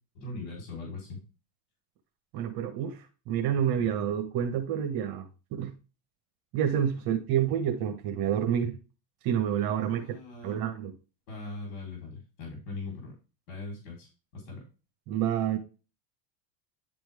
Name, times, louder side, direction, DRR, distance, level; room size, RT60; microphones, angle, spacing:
voice 1, 0.1-1.2 9.9-10.6 11.3-13.1 13.5-14.6, left 3 dB, 60° left, 3.8 m, -40 dB
voice 2, 2.3-3.0 3.3-5.2 5.5-5.7 6.5-8.8 9.2-10.0 10.4-10.9 15.1-15.6, right 9 dB, 50° right, 1.4 m, -28 dB
10.5 x 4.4 x 3.5 m
supercardioid pair, 145°, 48 cm